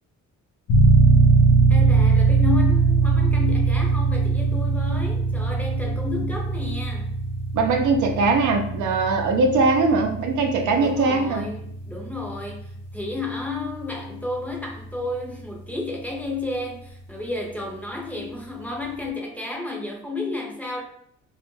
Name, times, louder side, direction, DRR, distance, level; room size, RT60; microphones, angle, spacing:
sound 1, 0.7-15.1, right 4 dB, 85° left, 0.6 m, -21 dB
voice 1, 1.7-7.2 10.8-20.8, left 3 dB, 5° left, -1 dB, 0.5 m, -31 dB
voice 2, 7.5-11.4, right 3 dB, 75° right, 3 dB, 0.5 m, -21 dB
2.3 x 2.1 x 3.1 m, 0.69 s
cardioid pair, 90°, 30 cm